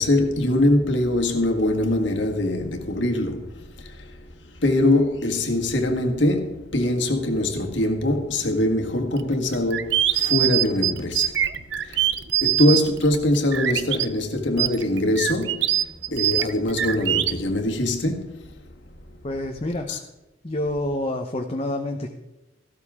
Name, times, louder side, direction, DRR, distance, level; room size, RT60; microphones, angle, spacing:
voice 1, 0.0-4.3 4.6-11.4 11.8-12.1 12.4-18.5 19.9-20.0, left 1 dB, 75° left, 1.8 m, -23 dB
sound 1, 9.2-14.1 14.5-17.3, right 12 dB, 70° right, 0.6 m, -23 dB
voice 2, 19.2-20.0 20.4-22.1, left 1 dB, 35° left, 0.9 m, -28 dB
15.5 x 12.5 x 3.6 m
head